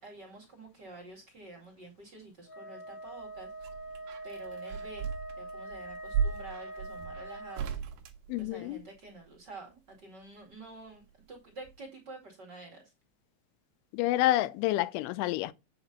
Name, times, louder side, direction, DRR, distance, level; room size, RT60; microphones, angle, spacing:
voice 1, 0.0-3.5 4.2-5.1 5.4-7.8 8.4-12.9, right 2 dB, 35° right, 1.8 m, -49 dB
Wind instrument woodwind instrument, 2.5-7.8, right 1 dB, 40° left, 2.4 m, -43 dB
sound 1, 3.1-9.1 10.5-11.4 11.6-11.7, right 7 dB, 70° right, 2.5 m, -37 dB
voice 2, 8.3-8.8 13.9-15.5, left 16 dB, 85° left, 3.0 m, -28 dB
8.8 x 5.9 x 4.0 m
omnidirectional pair, 5.5 m